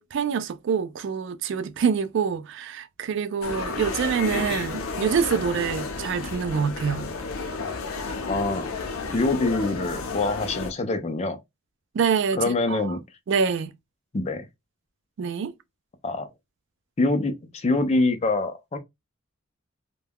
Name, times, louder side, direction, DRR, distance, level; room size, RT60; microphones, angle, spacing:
voice 1, 0.0-7.1 11.9-13.0 13.3-13.7 15.2-15.5, right 6 dB, 60° right, 0.3 m, -26 dB
sound 1, 3.4-10.7, left 4 dB, 80° left, 0.6 m, -32 dB
voice 2, 8.3-8.7 9.1-11.4 12.4-13.0 14.1-14.4 16.0-16.3 17.0-18.8, left 2 dB, 30° left, 0.4 m, -25 dB
2.2 x 2.1 x 3.3 m
head